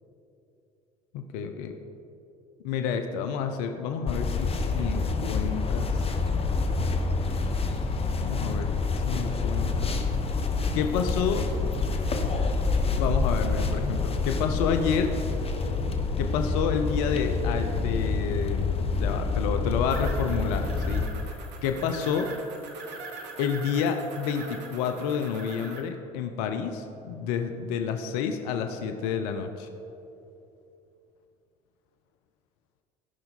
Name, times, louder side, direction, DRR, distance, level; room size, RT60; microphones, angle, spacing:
voice 1, 1.1-1.8 2.6-5.9 8.1-8.7 9.0-10.0 10.7-11.5 13.0-15.1 16.2-21.1 21.6-22.3 23.4-29.7, left 7 dB, 70° left, 6 dB, 0.7 m, -29 dB
sound 1, 4.1-21.1, left 3 dB, 30° left, 1.0 m, -27 dB
sound 2, 19.9-25.8, right 4 dB, 60° right, 1.5 m, -42 dB
16.5 x 5.8 x 4.2 m, 2.9 s
hypercardioid pair, 70°, 20 cm